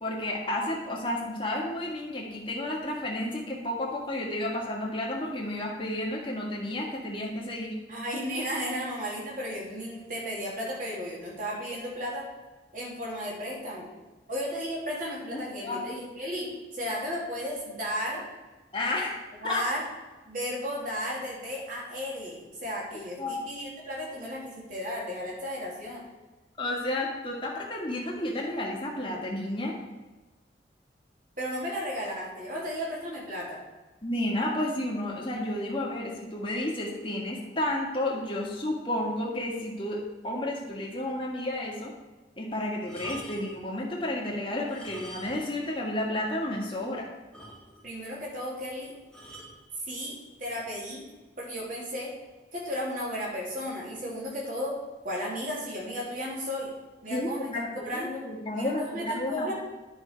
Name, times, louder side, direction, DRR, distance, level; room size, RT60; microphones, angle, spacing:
voice 1, 0.0-7.8 8.6-8.8 15.3-15.8 18.7-19.6 23.2-23.4 26.6-29.7 34.0-41.9 42.4-47.1 57.1-59.5, left 1 dB, 30° left, -2 dB, 1.9 m, -31 dB
voice 2, 7.9-12.3 12.7-13.9 14.3-16.5 16.7-18.2 19.4-19.8 20.3-26.0 31.4-33.6 47.8-48.9 49.9-51.0 51.4-52.1 52.5-54.8 55.0-56.7 57.0-58.2 58.5-59.5, equal, 50° right, -4 dB, 3.1 m, -34 dB
sound 1, 42.8-43.6 44.6-45.6 45.9-46.0 46.5-46.6 46.9-47.0 47.3-48.0 49.1-49.6 50.4-50.7, right 1 dB, 5° left, 2.0 m, -45 dB
10.5 x 6.2 x 4.7 m, 1.2 s
head